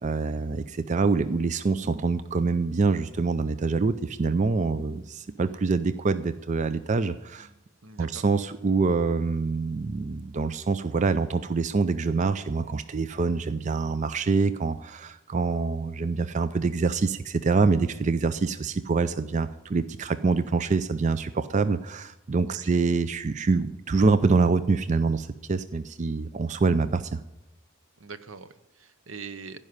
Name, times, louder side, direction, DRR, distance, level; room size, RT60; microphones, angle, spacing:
voice 1, 0.0-7.5 8.0-27.2, right 4 dB, 35° right, 12 dB, 0.4 m, -25 dB
voice 2, 7.8-8.2 22.5-22.8 28.0-29.6, right 5 dB, 75° right, 12 dB, 0.9 m, -42 dB
15.5 x 5.5 x 9.5 m, 0.94 s
head